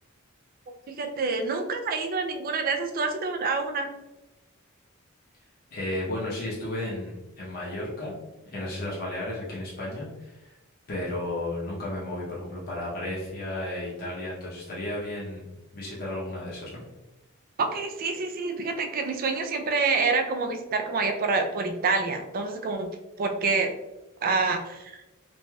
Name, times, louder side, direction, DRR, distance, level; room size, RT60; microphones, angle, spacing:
voice 1, 0.9-3.9 17.6-22.9 23.2-23.7 24.2-25.0, right 4 dB, 45° right, 5 dB, 0.4 m, -27 dB
voice 2, 5.7-8.1 8.5-10.5 10.9-16.8, left 1 dB, 45° left, -6 dB, 0.7 m, -33 dB
3.1 x 2.6 x 2.2 m, 1.0 s
head